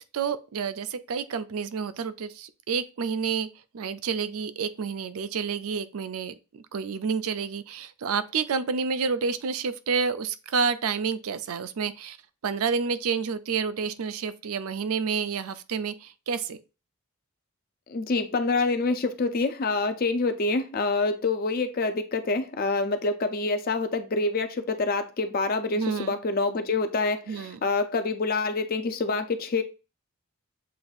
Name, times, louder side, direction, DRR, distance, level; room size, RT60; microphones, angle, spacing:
voice 1, 0.0-3.5 3.7-12.2 12.4-16.6 25.7-26.1 27.3-27.6, right 5 dB, 75° right, 0.4 m, -29 dB
voice 2, 17.9-29.6, left 3 dB, 40° left, 0.4 m, -26 dB
7.6 x 2.6 x 2.4 m
head